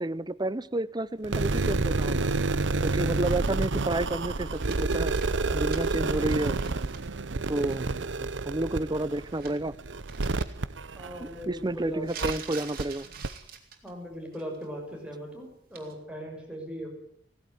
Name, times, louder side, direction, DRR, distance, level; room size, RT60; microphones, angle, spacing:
voice 1, 0.0-2.3 2.8-5.1 5.5-6.6 7.5-7.9 8.2-9.7 11.2-13.1, right 2 dB, 25° right, 17 dB, 0.8 m, -30 dB
sound 1, 1.2-11.6 12.2-12.3 12.8-12.9 13.2-13.3, right 3 dB, 90° right, 0.8 m, -29 dB
sound 2, 4.0-7.0 7.3-7.4 9.0-9.7 10.1-10.4 12.0-14.0 14.3-14.7 15.7-15.9, right 7 dB, 55° right, 3.9 m, -45 dB
voice 2, 10.9-12.1 13.8-16.9, equal, 5° right, 0 dB, 6.3 m, -39 dB
18.0 x 16.0 x 9.9 m, 0.68 s
head